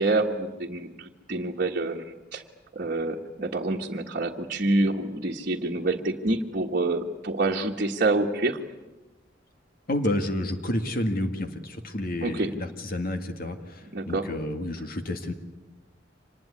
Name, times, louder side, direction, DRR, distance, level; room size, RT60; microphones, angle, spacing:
voice 1, 0.0-2.4 2.7-8.6 12.2-12.5 13.9-14.3, right 2 dB, 50° right, -2 dB, 1.6 m, -27 dB
voice 2, 9.9-15.3, left 1 dB, 50° left, 7 dB, 2.0 m, -30 dB
26.0 x 20.0 x 9.8 m, 1.1 s
head